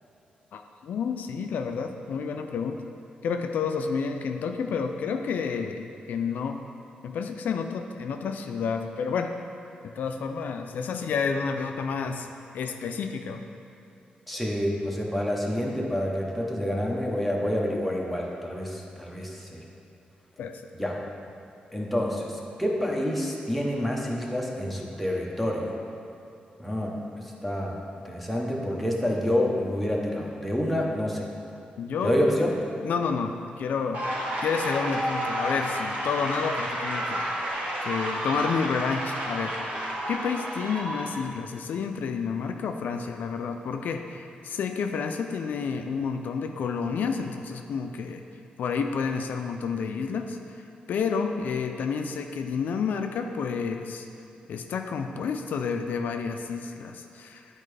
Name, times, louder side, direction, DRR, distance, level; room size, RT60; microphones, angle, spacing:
voice 1, 0.5-2.8 3.2-6.6 7.0-9.3 9.8-12.3 12.5-13.4 20.4-20.6 31.8-32.2 32.8-34.1 34.4-37.3 37.8-39.7 40.1-48.2 48.6-50.6 50.9-54.0 54.5-57.5, left 5 dB, 75° left, 5 dB, 0.4 m, -30 dB
voice 2, 14.3-19.6 20.7-21.0 21.7-25.7 26.6-27.8 28.0-31.3 32.0-32.5, equal, ahead, -2 dB, 0.8 m, -28 dB
sound 1, 33.9-41.2, equal, 65° right, 1.6 m, -31 dB
9.7 x 4.4 x 3.3 m, 2.8 s
wide cardioid pair, 155°, 3 cm